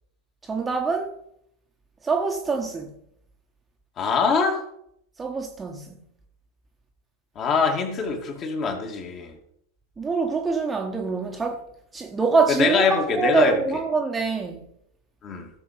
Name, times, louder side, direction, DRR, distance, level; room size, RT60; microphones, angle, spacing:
voice 1, 0.4-1.2 2.0-2.9 5.2-6.0 10.0-11.6 11.9-14.6, right 4 dB, 15° right, 1.5 m, -25 dB
voice 2, 4.0-4.6 7.4-9.4 12.5-13.6 15.2-15.5, left 5 dB, 30° left, 2.5 m, -23 dB
17.0 x 7.0 x 5.1 m
figure-of-eight pair, 90°, 0 cm